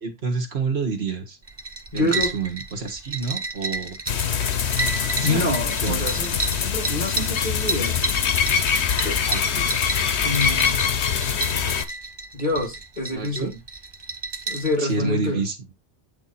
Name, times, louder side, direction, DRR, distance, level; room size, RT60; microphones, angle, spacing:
voice 1, 0.0-1.4 1.9-4.0 5.2-5.5 5.8-6.1 9.3-9.7 13.1-13.5 14.8-15.6, right 4 dB, 70° right, 1.7 m, -28 dB
sound 1, 1.4-14.8, right 3 dB, 25° right, 0.7 m, -32 dB
voice 2, 1.9-2.3 5.2-8.0 9.0-9.2 10.2-10.9 12.3-13.6 14.5-15.4, left 2 dB, 45° left, 2.4 m, -27 dB
sound 2, 4.1-11.9, left 7 dB, 90° left, 1.1 m, -23 dB
8.5 x 3.6 x 4.2 m
omnidirectional pair, 1.1 m